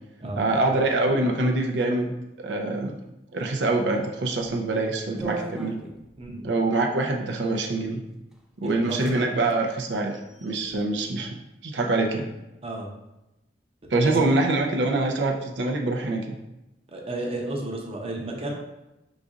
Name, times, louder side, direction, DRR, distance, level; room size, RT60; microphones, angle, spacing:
voice 1, 0.4-2.1 2.4-3.0 3.3-5.8 6.4-8.1 8.6-11.4 11.6-12.3 13.9-16.4, right 2 dB, 90° right, 2 dB, 0.5 m, -25 dB
sound 1, 5.2-6.3 7.3-7.7 8.3-8.4 8.7-9.2 9.4-9.6 10.1-10.8, right 2 dB, 5° right, 0.4 m, -39 dB
voice 2, 6.2-6.5 8.6-9.1 12.6-12.9 13.9-14.2 16.9-18.5, right 2 dB, 35° right, 1 dB, 0.7 m, -32 dB
4.9 x 4.0 x 2.4 m, 0.95 s
head